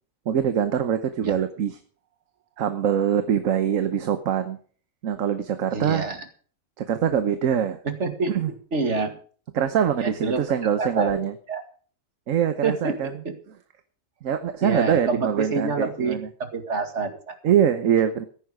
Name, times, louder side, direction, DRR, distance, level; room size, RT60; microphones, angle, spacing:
voice 1, 0.3-1.8 2.6-4.6 5.0-6.1 6.8-7.8 8.3-8.5 9.5-11.3 12.3-13.1 14.2-16.3 17.4-18.3, right 8 dB, 75° right, 9 dB, 1.3 m, -23 dB
voice 2, 5.7-6.2 8.0-8.3 8.7-9.2 10.0-10.4 10.8-11.6 12.6-13.0 13.2-13.3 14.6-16.2 16.5-17.3, right 3 dB, 60° right, 6 dB, 2.3 m, -27 dB
14.0 x 10.5 x 5.0 m, 0.43 s
omnidirectional pair, 1.4 m